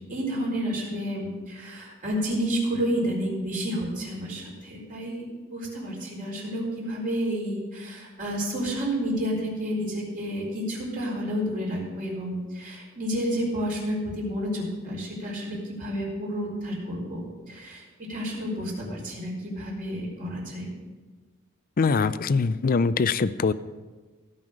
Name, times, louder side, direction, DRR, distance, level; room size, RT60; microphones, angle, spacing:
voice 1, 0.0-5.2 5.5-17.8 18.1-20.7, equal, 40° right, -4 dB, 4.1 m, -30 dB
voice 2, 21.8-23.5, left 4 dB, 40° left, 15 dB, 0.4 m, -23 dB
17.0 x 5.6 x 6.4 m, 1.3 s
head